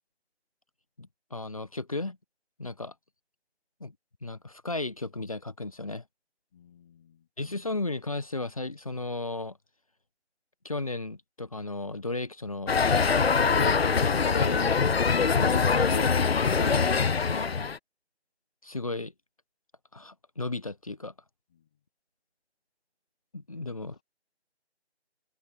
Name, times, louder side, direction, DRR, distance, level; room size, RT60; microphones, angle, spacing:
voice 1, 1.0-2.2 2.6-2.9 3.8-3.9 4.2-6.0 7.4-9.6 10.6-12.8 13.2-14.8 15.2-16.3 16.5-16.9 17.3-17.6 18.6-19.1 19.9-21.1 23.3-24.0, left 2 dB, 30° left, 1.0 m, -35 dB
voice 2, 6.5-7.3 21.5-21.8 23.5-24.0, left 9 dB, 5° left, 1.3 m, -60 dB
sound 1, 12.7-17.8, left 5 dB, 60° left, 0.5 m, -23 dB
figure-of-eight pair, 160°, 34 cm